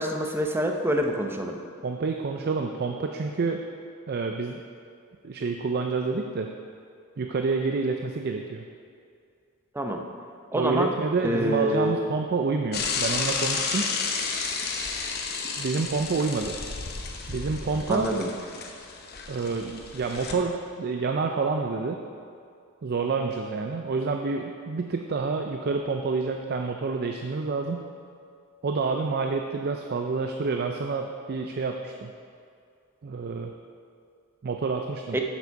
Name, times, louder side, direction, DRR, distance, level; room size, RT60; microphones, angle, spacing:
voice 1, 0.0-1.6 9.7-10.0 10.5-10.9 11.2-12.0 17.9-18.3 35.1-35.2, equal, 10° right, 3 dB, 0.7 m, -26 dB
voice 2, 1.8-3.6 4.1-4.6 5.2-6.5 7.2-8.6 10.5-13.9 15.6-16.6 17.3-18.1 19.3-22.0 22.8-27.8 28.6-32.1 33.0-33.5 34.4-35.2, right 4 dB, 50° right, 4 dB, 0.4 m, -28 dB
Bicycle / Mechanisms, 12.7-20.3, left 4 dB, 50° left, 0.9 m, -32 dB
8.0 x 7.3 x 5.2 m, 2.4 s
head